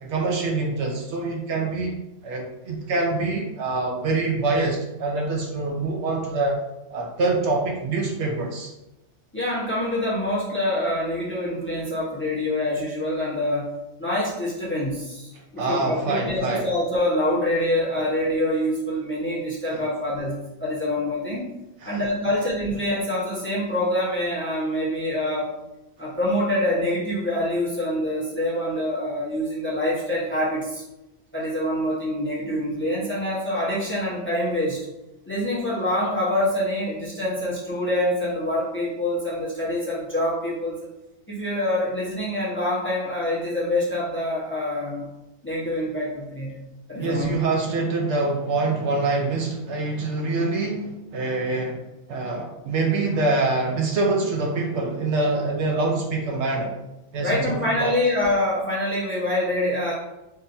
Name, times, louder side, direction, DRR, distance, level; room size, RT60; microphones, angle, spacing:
voice 1, 0.0-2.0 2.2-6.6 6.9-8.7 15.6-16.7 19.7-19.8 21.8-22.0 47.0-51.8 52.1-56.8 57.1-57.9, right 3 dB, 70° right, 0 dB, 0.9 m, -25 dB
voice 2, 9.3-13.7 14.0-21.5 21.9-25.5 26.0-30.8 31.3-34.8 35.3-40.8 41.3-45.1 45.4-46.6 46.9-47.4 57.2-59.9, left 1 dB, 10° left, -7 dB, 0.8 m, -25 dB
3.8 x 2.7 x 2.6 m, 0.95 s
omnidirectional pair, 1.3 m